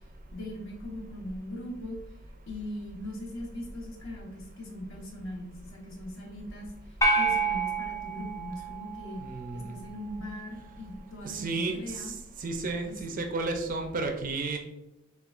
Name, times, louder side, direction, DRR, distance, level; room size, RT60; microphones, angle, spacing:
voice 1, 0.3-2.0 2.5-9.2 9.5-12.1 12.8-13.0, left 1 dB, 65° left, -2 dB, 1.0 m, -40 dB
sound 1, 7.0-9.5, right 3 dB, 15° left, 0.6 m, -28 dB
voice 2, 9.2-9.7 11.2-12.1 12.4-14.6, right 3 dB, 40° right, 4 dB, 0.5 m, -32 dB
6.7 x 2.3 x 2.4 m, 0.90 s
head